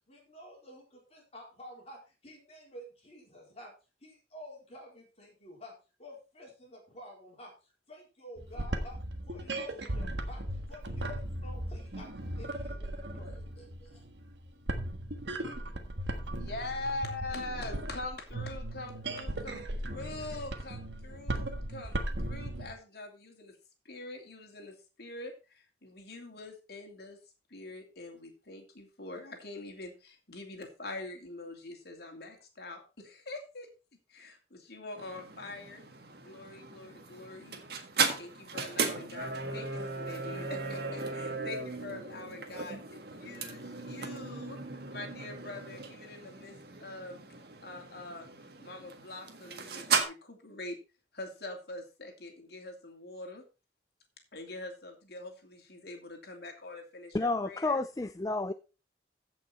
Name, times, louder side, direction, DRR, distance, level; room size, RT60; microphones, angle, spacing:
voice 1, 0.1-3.7 4.0-5.7 6.0-9.0 9.3-14.0, left 1 dB, 35° left, -2 dB, 4.2 m, -50 dB
sound 1, 8.4-22.7, right 1 dB, 75° right, 1.5 m, -37 dB
voice 2, 16.4-23.6 23.8-27.2 27.5-33.7 34.1-35.8 36.2-37.6 38.1-44.6 44.9-47.2 47.6-48.3 48.6-50.8 51.1-53.4 54.3-57.8, left 2 dB, 60° left, 3 dB, 2.7 m, -44 dB
sound 2, 35.0-50.0, right 4 dB, 60° right, 1.7 m, -36 dB
voice 3, 57.1-58.5, left 2 dB, 20° left, 12 dB, 0.4 m, -30 dB
15.0 x 5.5 x 4.3 m, 0.31 s
head